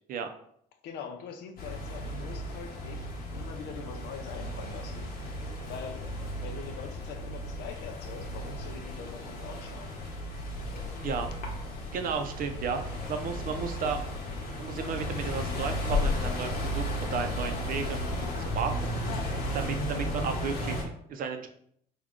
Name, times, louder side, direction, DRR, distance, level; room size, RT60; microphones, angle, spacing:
voice 1, 0.8-3.1 3.3-5.4 5.6-6.0 6.3-10.0, left 6 dB, 80° left, 6 dB, 0.6 m, -43 dB
sound 1, 1.6-20.8, left 1 dB, 60° left, 1.0 m, -34 dB
voice 2, 11.0-11.3 11.9-14.0 14.6-18.0 18.4-21.5, right 5 dB, 55° right, 6 dB, 0.5 m, -34 dB
3.6 x 2.2 x 3.6 m, 0.67 s
cardioid pair, 110°, 17 cm